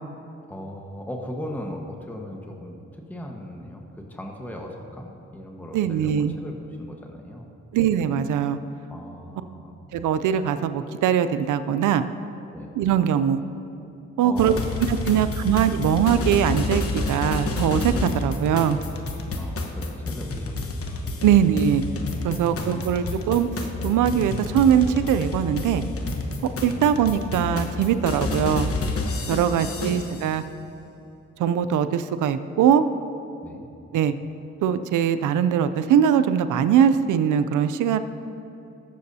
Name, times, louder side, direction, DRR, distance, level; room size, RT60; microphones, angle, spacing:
voice 1, 0.5-7.5 8.9-9.7 12.5-12.7 14.2-14.8 15.1-15.3 19.3-20.5 21.3-21.5 22.4-23.2 26.7-26.9 29.4-30.0 33.4-33.7, equal, 5° left, 0 dB, 1.3 m, -38 dB
voice 2, 5.7-6.4 7.7-8.6 9.9-12.1 12.8-13.4 14.2-14.5 14.9-18.8 21.2-21.8 22.2-23.5 23.8-25.8 26.4-28.7 29.3-30.4 31.4-32.8 33.9-34.1 34.6-38.0, right 8 dB, 85° right, 12 dB, 0.5 m, -21 dB
sound 1, 14.4-30.3, left 2 dB, 50° left, 1.1 m, -29 dB
20.0 x 6.9 x 2.8 m, 2.7 s
cardioid pair, 60°, 30 cm